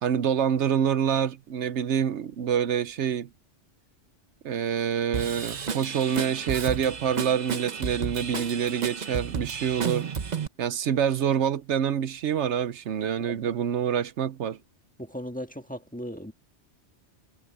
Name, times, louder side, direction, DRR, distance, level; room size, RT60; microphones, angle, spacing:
voice 1, 0.0-3.3 4.4-10.1 10.6-14.6, right 8 dB, 75° right, 1.0 m, -26 dB
Drum kit / Drum, 5.1-10.5, right 6 dB, 40° right, 0.9 m, -32 dB
voice 2, 13.2-13.5 15.0-16.3, equal, 5° left, 1.5 m, -37 dB
omnidirectional pair, 1.2 m